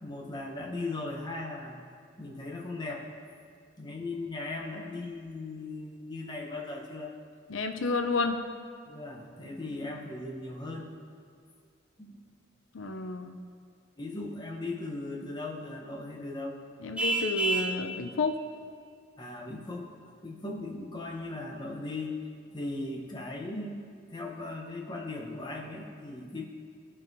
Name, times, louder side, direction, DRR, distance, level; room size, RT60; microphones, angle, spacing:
voice 1, 0.0-1.8 2.2-3.1 3.8-7.1 8.9-10.9 12.0-12.3 14.0-16.6 19.2-22.2 22.5-23.8 24.1-26.4, left 2 dB, 25° left, -1 dB, 0.9 m, -38 dB
voice 2, 7.5-8.4 12.7-13.4 16.8-18.4, left 3 dB, 90° left, 6 dB, 0.5 m, -30 dB
Vehicle horn car horn honking, 17.0-17.8, right 2 dB, 5° right, 0.4 m, -28 dB
16.0 x 5.5 x 2.7 m, 2.2 s
head